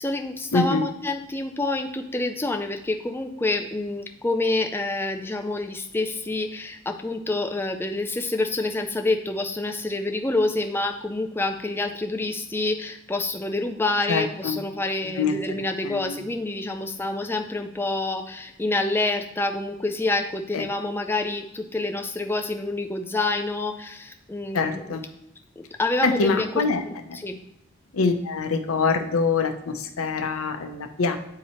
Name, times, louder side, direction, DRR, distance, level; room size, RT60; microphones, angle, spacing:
voice 1, 0.0-24.8 25.6-27.4, left 2 dB, 10° left, 4 dB, 0.3 m, -27 dB
voice 2, 0.5-0.8 14.1-14.6 15.0-16.2 20.5-20.6 24.5-25.0 26.0-26.8 27.1-27.2 27.9-31.2, left 4 dB, 85° left, 7 dB, 0.6 m, -25 dB
8.5 x 2.9 x 4.3 m, 0.82 s
head